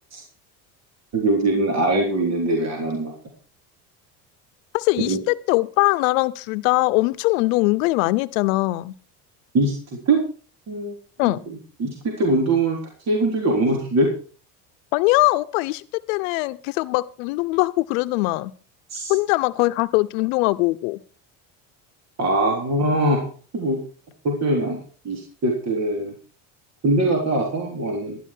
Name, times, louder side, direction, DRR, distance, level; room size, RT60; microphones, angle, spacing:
voice 1, 1.1-3.1 5.1-5.2 9.5-9.7 10.1-10.2 10.7-11.0 11.2-11.4 11.8-12.8 13.1-14.1 18.9-19.1 22.2-23.3 23.5-23.8 24.2-24.8 25.0-26.1 26.8-28.2, right 2 dB, 40° right, 3.9 m, -22 dB
voice 2, 4.7-8.9 11.2-11.4 14.9-18.5 19.1-21.0, left 21 dB, 85° left, 0.8 m, -21 dB
12.0 x 12.0 x 4.6 m
supercardioid pair, 95°, 39 cm